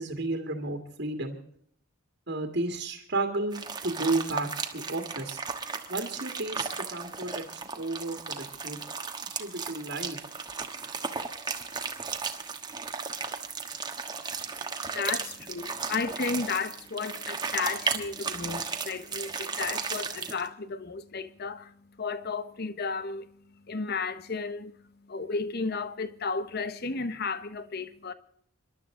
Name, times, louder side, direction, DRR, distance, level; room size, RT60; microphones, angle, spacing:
voice 1, 0.0-1.4 2.3-5.4 5.9-8.8 9.3-10.2, right 2 dB, 55° right, 1.9 m, -32 dB
sound 1, 3.5-20.5, right 5 dB, 20° right, 1.1 m, -35 dB
voice 2, 14.8-28.1, left 4 dB, 45° left, 0.9 m, -33 dB
26.5 x 12.0 x 3.7 m
head